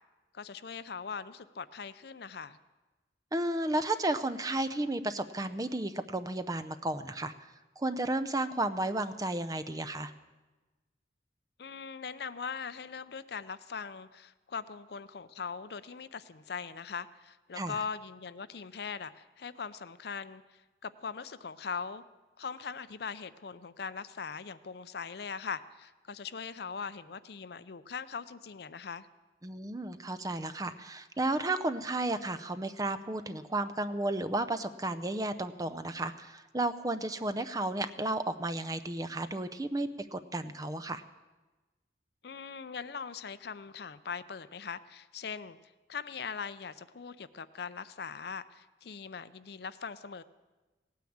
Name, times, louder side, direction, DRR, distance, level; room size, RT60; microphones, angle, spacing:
voice 1, 0.3-2.6 11.6-22.0 22.4-29.1 42.2-45.6 45.9-50.2, left 6 dB, 55° left, 15 dB, 0.5 m, -41 dB
voice 2, 3.3-10.1 17.5-17.8 29.4-41.0, right 2 dB, 20° right, 12 dB, 0.5 m, -33 dB
17.0 x 9.4 x 8.6 m, 1.2 s
head